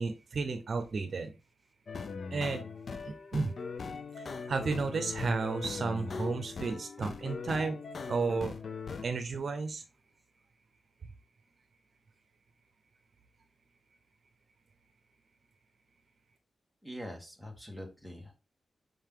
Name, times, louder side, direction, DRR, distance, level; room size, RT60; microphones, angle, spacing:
voice 1, 0.0-1.3 2.3-2.6 3.0-3.5 4.2-7.8 8.1-8.5 9.0-9.8, right 4 dB, 50° right, 7 dB, 0.8 m, -33 dB
sound 1, 1.9-9.1, left 5 dB, 50° left, 0.6 m, -40 dB
voice 2, 16.8-18.3, equal, 5° left, 2 dB, 1.6 m, -44 dB
5.5 x 5.2 x 3.8 m, 0.29 s
wide cardioid pair, 155°, 0 cm